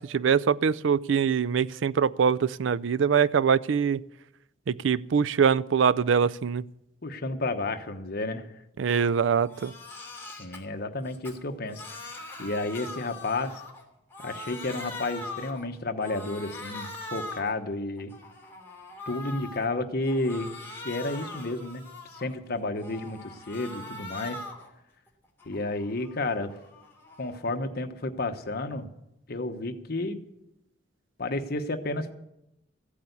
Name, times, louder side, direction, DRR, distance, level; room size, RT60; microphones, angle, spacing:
voice 1, 0.0-4.0 4.7-6.6 8.8-9.7, right 6 dB, 75° right, 17 dB, 0.4 m, -23 dB
voice 2, 7.0-8.5 10.4-13.6 14.2-18.1 19.1-20.6 20.8-21.8 22.1-24.4 25.5-26.6 27.2-28.9 29.3-30.2 31.2-32.1, left 2 dB, 55° left, 6 dB, 1.1 m, -31 dB
Crying sobbing, 8.9-9.1 9.4-10.6 11.1-13.8 14.1-15.6 16.0-17.5 18.0-19.6 20.0-22.4 22.8-24.7 25.1-27.4, left 2 dB, 15° left, 3.0 m, -42 dB
15.0 x 8.5 x 8.3 m, 0.85 s
head